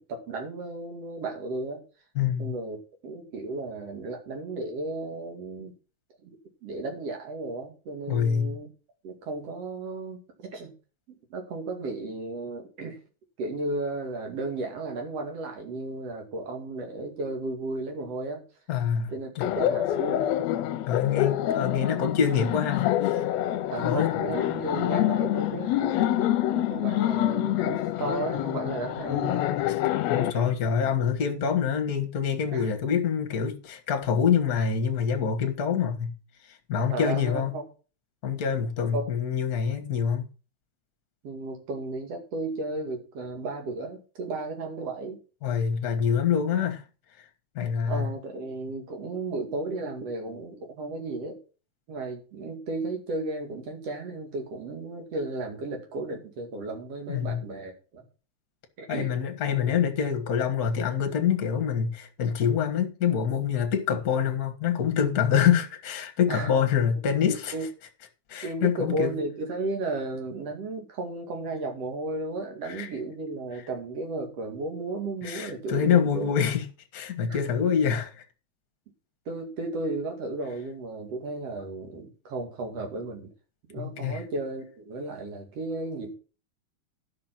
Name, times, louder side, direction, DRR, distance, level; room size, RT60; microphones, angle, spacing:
voice 1, 0.1-1.8 2.4-2.8 3.0-5.7 6.2-6.4 6.6-8.7 9.0-10.7 11.1-13.0 13.4-18.4 19.1-20.3 23.7-29.5 30.3-30.6 32.5-32.7 36.9-37.6 38.9-39.1 41.2-45.2 47.9-51.4 51.9-58.1 58.8-59.1 66.3-66.5 67.5-67.7 68.4-76.3 77.3-77.4 79.3-83.3 83.7-86.1, right 2 dB, 55° right, 3.2 m, -34 dB
voice 2, 2.1-2.5 8.1-8.6 18.7-19.4 20.9-23.2 23.8-24.1 29.6-29.8 30.1-36.1 36.7-37.5 38.2-40.3 45.4-46.8 47.5-48.1 57.1-57.4 58.9-67.5 68.3-69.1 72.6-72.9 75.2-76.7 76.9-78.2 83.8-84.2, left 7 dB, 40° left, 1.4 m, -26 dB
Laughter, 19.4-30.3, left 13 dB, 75° left, 1.8 m, -26 dB
11.5 x 5.9 x 5.9 m
omnidirectional pair, 3.4 m